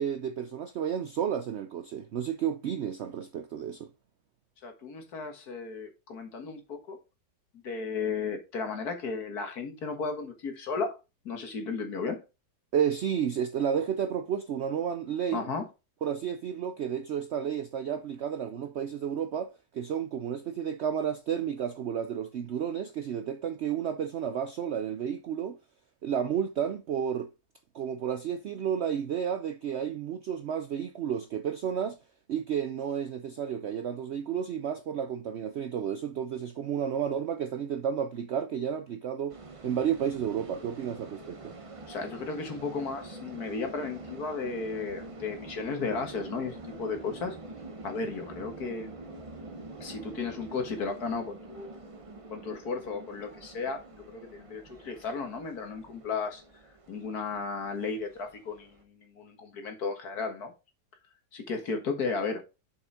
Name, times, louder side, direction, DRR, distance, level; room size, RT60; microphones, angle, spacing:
voice 1, 0.0-3.9 12.7-15.5 16.0-25.6 26.0-27.3 27.7-32.0 32.3-39.4 39.6-41.6, right 8 dB, 75° right, 0.6 m, -31 dB
voice 2, 4.6-7.0 7.6-11.0 11.3-12.2 15.3-15.6 41.9-47.4 47.8-48.9 49.8-51.8 52.3-56.4 56.9-60.5 61.3-62.4, left 4 dB, 65° left, 2.0 m, -34 dB
sound 1, 39.3-58.8, right 2 dB, 30° right, 0.6 m, -46 dB
7.0 x 5.4 x 3.8 m
omnidirectional pair, 1.8 m